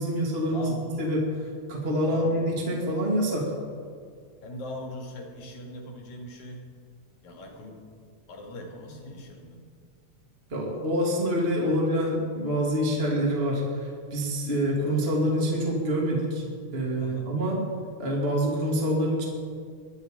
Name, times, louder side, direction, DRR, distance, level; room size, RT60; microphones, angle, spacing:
voice 1, 0.0-3.5 10.5-16.4 16.7-17.7 18.0-19.3, equal, 20° right, -2 dB, 2.2 m, -26 dB
voice 2, 0.5-1.0 2.0-2.5 4.4-6.7 7.2-7.9 8.3-9.6 17.0-17.4, left 1 dB, 70° left, 0 dB, 3.7 m, -40 dB
21.5 x 11.5 x 5.1 m, 2.2 s
omnidirectional pair, 3.6 m